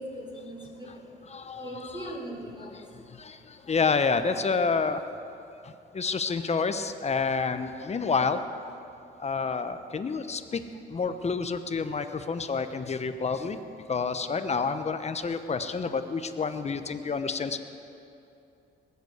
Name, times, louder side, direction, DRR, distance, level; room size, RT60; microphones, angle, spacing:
voice 1, 0.0-1.1 1.6-3.1, right 1 dB, 20° right, -1 dB, 4.2 m, -40 dB
voice 2, 1.2-2.2 2.6-5.0 5.6-8.4 9.2-10.6 10.9-13.6 13.9-17.6, left 5 dB, 35° left, 10 dB, 1.0 m, -29 dB
20.0 x 8.3 x 7.9 m, 2.7 s
cardioid pair, 90°, 20 cm